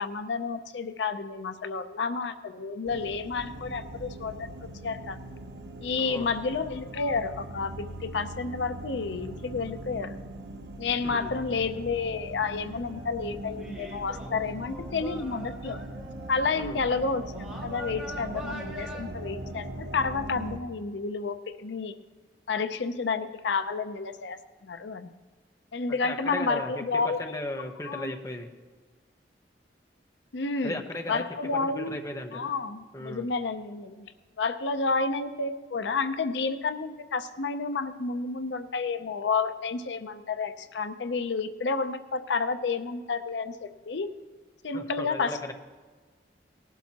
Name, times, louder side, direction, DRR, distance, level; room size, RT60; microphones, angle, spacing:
voice 1, 0.0-4.5 4.8-5.2 5.8-10.2 10.8-15.8 16.3-21.9 22.5-25.1 25.7-27.4 27.9-28.1 30.3-30.7 31.1-32.0 32.3-34.1 34.4-44.1 44.6-45.5, left 4 dB, 85° left, 10 dB, 0.6 m, -30 dB
sound 1, 2.8-20.6, right 1 dB, 85° right, 1.0 m, -41 dB
sound 2, 12.7-13.1 13.6-16.4 17.3-19.0, right 1 dB, 5° right, 1.6 m, -43 dB
voice 2, 25.9-28.5 30.6-31.2 31.5-32.5 32.9-33.3 44.7-45.4, left 1 dB, 20° left, 3 dB, 0.9 m, -36 dB
18.5 x 11.5 x 2.9 m, 1.4 s
head